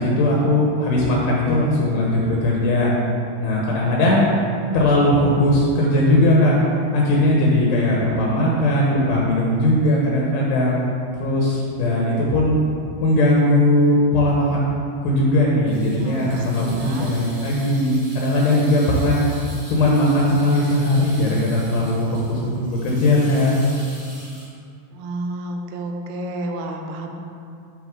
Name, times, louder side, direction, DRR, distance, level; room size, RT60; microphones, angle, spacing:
voice 1, 0.0-2.9 3.4-4.3 4.7-6.6 6.9-10.8 11.2-12.6 13.0-14.7 15.0-19.2 19.7-23.6, left 1 dB, 90° left, -4 dB, 3.1 m, -19 dB
sound 1, 15.7-24.5, equal, 35° right, 1.2 m, -42 dB
voice 2, 16.0-17.1 24.9-27.1, right 1 dB, 80° right, 3 dB, 2.6 m, -31 dB
7.5 x 6.2 x 3.7 m, 2.4 s
omnidirectional pair, 4.6 m